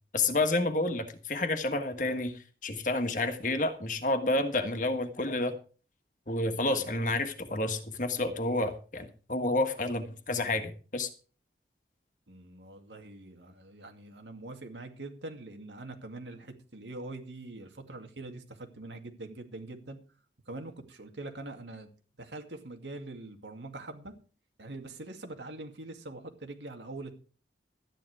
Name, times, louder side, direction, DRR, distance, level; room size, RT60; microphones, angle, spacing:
voice 1, 0.1-5.5 6.3-11.1, left 2 dB, 45° left, 7 dB, 1.5 m, -30 dB
voice 2, 6.7-7.2 12.3-20.0 20.5-21.9 22.2-24.1 24.6-27.2, right 2 dB, 85° right, 4 dB, 2.3 m, -43 dB
13.0 x 10.0 x 4.8 m, 0.38 s
head